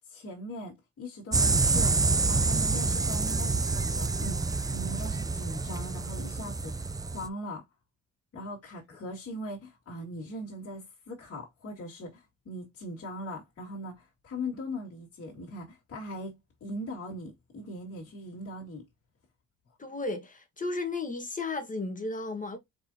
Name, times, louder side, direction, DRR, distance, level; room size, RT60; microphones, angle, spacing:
voice 1, 0.1-7.6 8.3-18.8, left 1 dB, 50° left, 2.3 m, -40 dB
sound 1, 1.3-7.3, right 3 dB, 15° right, 0.4 m, -27 dB
voice 2, 19.8-22.6, left 3 dB, 25° left, 1.5 m, -34 dB
4.4 x 4.1 x 2.8 m
cardioid pair, 90°, 30 cm